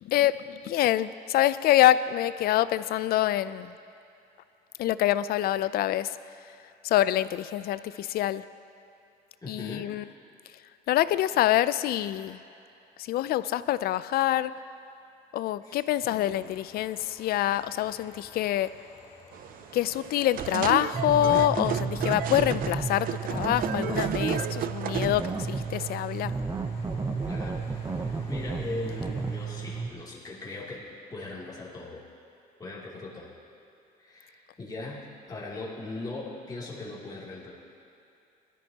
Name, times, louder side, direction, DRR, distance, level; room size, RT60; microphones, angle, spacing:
voice 1, 0.0-3.7 4.8-6.2 6.8-8.5 9.5-10.0 10.9-12.4 13.0-14.5 15.3-18.7 19.7-26.3, left 13 dB, 65° left, 15 dB, 0.4 m, -26 dB
voice 2, 9.4-9.9 15.6-16.5 27.2-27.6 28.0-30.8 31.1-32.0 32.6-33.3 34.0-37.5, left 2 dB, 20° left, -6 dB, 2.8 m, -39 dB
sound 1, 16.2-29.8, left 3 dB, 50° left, 3.5 m, -54 dB
sound 2, 19.3-26.2, right 10 dB, 55° right, 0.4 m, -34 dB
sound 3, 20.9-29.9, right 4 dB, 20° right, 0.8 m, -32 dB
18.5 x 13.0 x 2.9 m, 2.8 s
cardioid pair, 110°, 17 cm